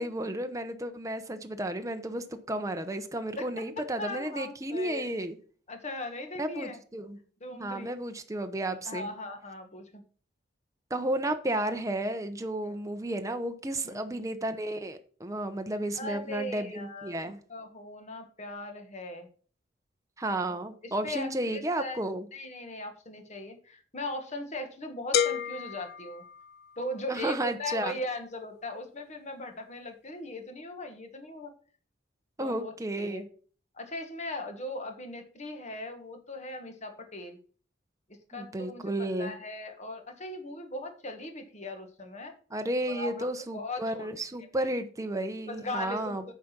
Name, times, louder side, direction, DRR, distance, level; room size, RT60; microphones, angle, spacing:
voice 1, 0.0-5.4 6.4-7.2 7.5-9.1 10.9-17.4 20.2-22.3 27.1-28.0 32.4-33.3 38.3-39.3 42.5-46.2, right 1 dB, 20° right, 0.8 m, -33 dB
voice 2, 4.0-5.1 5.7-6.8 7.4-7.9 8.8-10.0 12.6-12.8 13.8-14.0 15.9-19.3 20.5-20.6 20.8-22.0 22.3-26.2 26.8-31.5 32.4-33.2 33.7-37.4 38.3-42.3 42.9-43.2 43.5-44.1 44.5-44.7 45.5-46.2, left 1 dB, 40° left, 1.7 m, -39 dB
sound 1, 25.1-27.0, left 8 dB, 60° left, 0.5 m, -31 dB
9.3 x 5.1 x 6.0 m
head